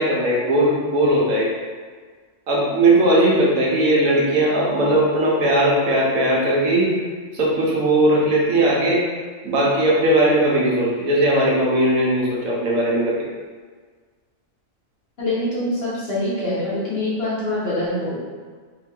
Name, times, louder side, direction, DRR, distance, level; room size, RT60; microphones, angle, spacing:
voice 1, 0.0-1.5 2.5-6.9 7.3-9.0 9.4-13.2, right 1 dB, 80° right, -5 dB, 1.3 m, -18 dB
voice 2, 15.2-18.2, left 1 dB, 45° left, -10 dB, 1.6 m, -24 dB
3.6 x 2.7 x 3.7 m, 1.5 s
omnidirectional pair, 1.4 m